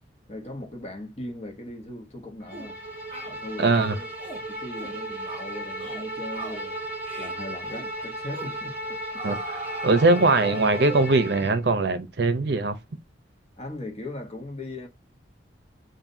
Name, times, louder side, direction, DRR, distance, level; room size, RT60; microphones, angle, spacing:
voice 1, 0.3-2.8 3.3-4.1 4.5-6.8 7.2-9.3 10.1-10.3 13.6-14.9, left 2 dB, 35° left, 1.2 m, -39 dB
Bowed string instrument, 2.5-11.6, right 1 dB, 10° right, 1.7 m, -35 dB
sound 1, 2.5-2.7 3.1-3.3 3.7-4.4 4.8-5.0 5.3-5.5 5.8-6.1 6.3-6.6 7.0-7.3 7.7-7.9 8.3-8.6 9.2-11.2, right 2 dB, 30° right, 1.8 m, -39 dB
voice 2, 3.6-3.9 9.2-12.8, right 3 dB, 60° right, 0.6 m, -21 dB
7.1 x 2.6 x 2.6 m
head